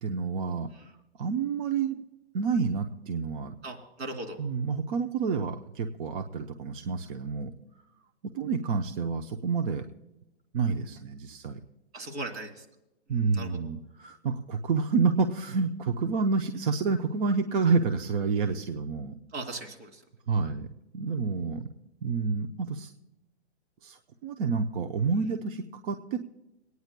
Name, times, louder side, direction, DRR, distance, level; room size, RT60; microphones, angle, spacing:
voice 1, 0.0-0.7 1.2-2.0 2.3-3.6 4.4-7.5 8.2-9.9 10.5-11.6 13.1-19.2 20.3-20.7 20.9-21.7 22.0-22.9 23.8-26.2, right 5 dB, 50° right, 5 dB, 0.8 m, -29 dB
voice 2, 3.6-4.4 11.9-12.6 13.3-13.6 19.3-20.0, right 2 dB, 80° right, 1 dB, 2.8 m, -38 dB
27.5 x 9.4 x 2.2 m, 0.91 s
hypercardioid pair, 135°, 33 cm